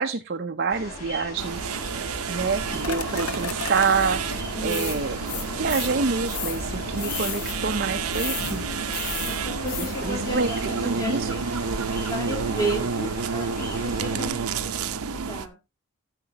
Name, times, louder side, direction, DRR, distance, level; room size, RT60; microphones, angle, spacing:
voice 1, 0.0-1.7 2.3-4.2 4.6-5.2 5.6-8.6 10.0-11.3, right 4 dB, 45° right, 0.5 m, -27 dB
sound 1, 0.7-14.3, equal, 40° left, 6.0 m, -39 dB
sound 2, 1.4-15.5, right 5 dB, 80° right, 0.7 m, -30 dB
sound 3, 2.3-10.4, left 5 dB, 80° left, 1.0 m, -35 dB
voice 2, 4.5-5.0 9.3-11.4 11.9-15.6, right 1 dB, 15° left, 2.0 m, -33 dB
11.5 x 7.4 x 2.9 m
head